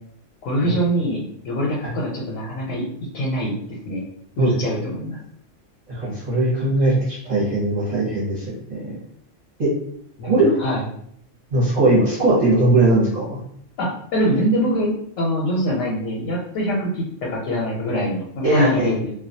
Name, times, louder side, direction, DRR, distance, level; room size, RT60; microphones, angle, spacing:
voice 1, 0.4-2.8 3.1-3.5 3.9-4.0 4.4-5.2 10.2-10.9 13.8-14.9 15.2-19.1, equal, 90° left, -3 dB, 1.0 m, -23 dB
voice 2, 5.9-8.4 8.7-9.0 9.6-9.7 10.2-10.6 11.5-13.4 18.4-18.9, right 2 dB, 40° right, -7 dB, 0.7 m, -19 dB
2.3 x 2.2 x 2.6 m, 0.68 s
omnidirectional pair, 1.3 m